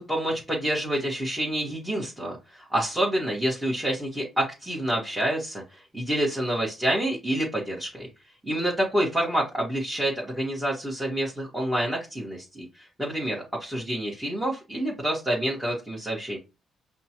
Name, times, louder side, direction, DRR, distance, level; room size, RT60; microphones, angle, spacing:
voice 1, 0.0-8.1 8.5-16.4, right 1 dB, 5° right, -5 dB, 1.4 m, -28 dB
5.7 x 2.3 x 2.9 m, 0.28 s
cardioid pair, 90°, 0 cm